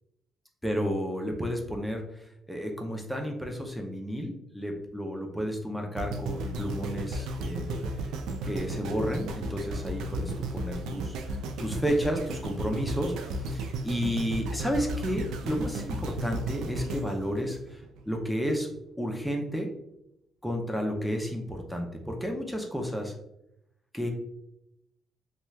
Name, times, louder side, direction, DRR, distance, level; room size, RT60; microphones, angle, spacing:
voice 1, 0.6-8.1 8.4-18.7 19.0-19.7 20.4-23.1 23.9-24.1, equal, ahead, 1 dB, 0.5 m, -32 dB
sound 1, 6.0-18.2 18.7-18.8, right 1 dB, 90° right, 0.3 m, -34 dB
2.9 x 2.3 x 3.2 m, 0.80 s
cardioid pair, 90°, 0 cm